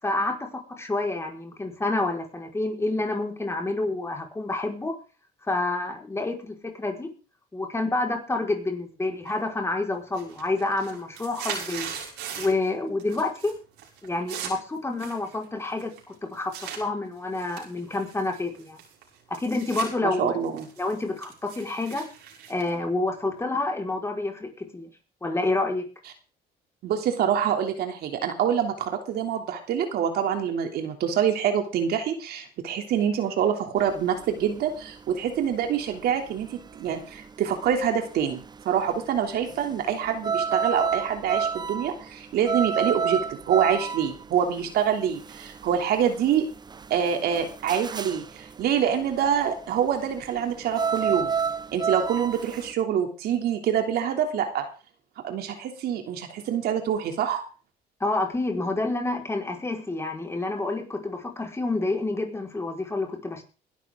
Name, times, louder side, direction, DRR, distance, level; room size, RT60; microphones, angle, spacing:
voice 1, 0.0-4.9 5.5-7.1 7.5-11.9 12.4-13.5 14.0-16.5 16.8-18.8 19.3-20.3 20.8-22.1 22.5-24.9 25.2-25.8 58.0-63.4, left 2 dB, 15° left, 2 dB, 5.0 m, -28 dB
sound 1, 9.3-9.7 10.0-12.7 13.0-13.5 13.8-16.8 17.3-19.9 20.3-23.4, right 8 dB, 85° right, 6.2 m, -39 dB
voice 2, 20.0-20.7 26.8-43.2 43.5-46.5 46.9-51.3 51.7-54.6 55.2-57.4, right 8 dB, 70° right, 5 dB, 3.1 m, -26 dB
sound 2, 33.8-52.7, right 6 dB, 25° right, 0.7 m, -31 dB
21.0 x 12.5 x 3.8 m, 0.36 s
cardioid pair, 110°, 17 cm